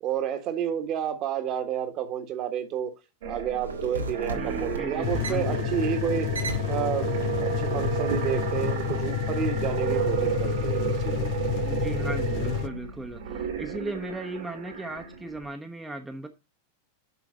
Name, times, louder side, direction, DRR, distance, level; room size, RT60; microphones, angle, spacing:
voice 1, 0.0-2.9 3.3-6.3 6.7-7.1 7.4-11.4, right 9 dB, 35° right, 1.5 m, -30 dB
sound 1, 3.2-15.5, right 8 dB, 55° right, 1.9 m, -33 dB
sound 2, 3.6-9.0, right 3 dB, 75° right, 1.6 m, -35 dB
voice 2, 4.3-5.7 11.6-16.3, right 2 dB, 5° right, 1.0 m, -37 dB
sound 3, 5.0-12.7, left 15 dB, 45° left, 0.5 m, -30 dB
6.8 x 6.0 x 5.4 m
figure-of-eight pair, 90°, 0 cm